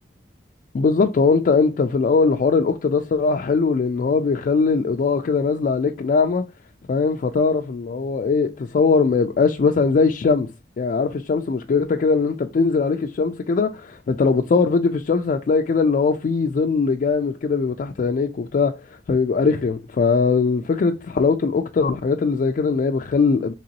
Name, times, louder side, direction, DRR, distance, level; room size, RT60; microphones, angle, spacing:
voice 1, 0.7-6.4 6.9-10.5 10.8-23.5, left 4 dB, 50° left, 0.3 m, -20 dB
3.9 x 2.9 x 2.8 m
head